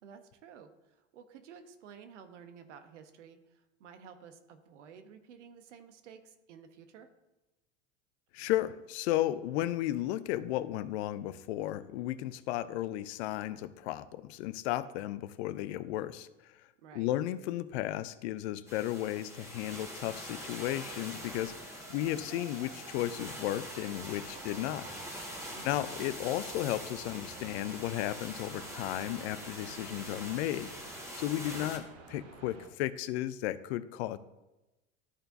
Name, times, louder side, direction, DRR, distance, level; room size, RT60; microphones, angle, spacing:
voice 1, 0.0-7.1 16.8-17.1 25.5-25.9, right 7 dB, 75° right, 9 dB, 0.9 m, -53 dB
voice 2, 8.3-16.3 16.9-24.9 25.6-30.7 31.1-34.2, left 14 dB, 65° left, 14 dB, 0.6 m, -34 dB
sound 1, 18.7-31.8, equal, 10° right, 1.6 m, -44 dB
sound 2, 20.0-32.7, right 5 dB, 45° right, 1.2 m, -52 dB
12.5 x 4.4 x 2.7 m, 1.0 s
hypercardioid pair, 90°, 36 cm